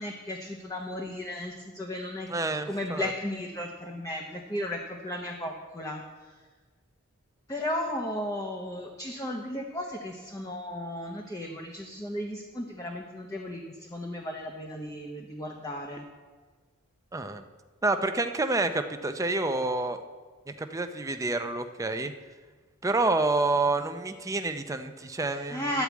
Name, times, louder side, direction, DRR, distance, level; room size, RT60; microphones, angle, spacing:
voice 1, 0.0-2.3 2.6-6.3 7.5-16.1 25.2-25.8, left 1 dB, 15° left, 1 dB, 0.7 m, -35 dB
voice 2, 2.3-3.1 17.1-17.4 17.8-20.0 20.5-22.1 22.8-25.7, right 2 dB, 15° right, 8 dB, 0.5 m, -28 dB
12.5 x 4.8 x 8.1 m, 1.4 s
head